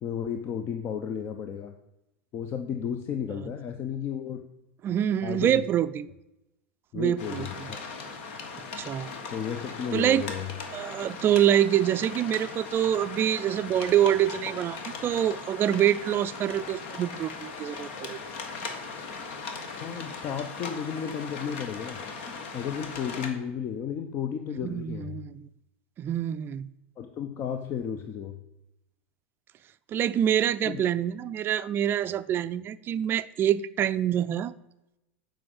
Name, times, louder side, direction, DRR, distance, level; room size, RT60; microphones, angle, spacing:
voice 1, 0.0-1.7 2.3-4.4 5.2-5.6 6.9-7.8 9.3-10.5 19.8-22.0 22.5-25.2 27.0-28.4 30.7-30.8, left 8 dB, 40° left, 7 dB, 0.7 m, -33 dB
voice 2, 4.8-6.1 6.9-7.4 8.8-9.1 9.9-10.2 10.7-18.2 24.6-25.5 26.0-26.7 29.9-34.5, right 10 dB, 35° right, 15 dB, 0.4 m, -26 dB
sound 1, 7.2-23.3, left 4 dB, 65° left, 1.6 m, -39 dB
7.6 x 5.1 x 7.2 m, 0.93 s
hypercardioid pair, 100°, 7 cm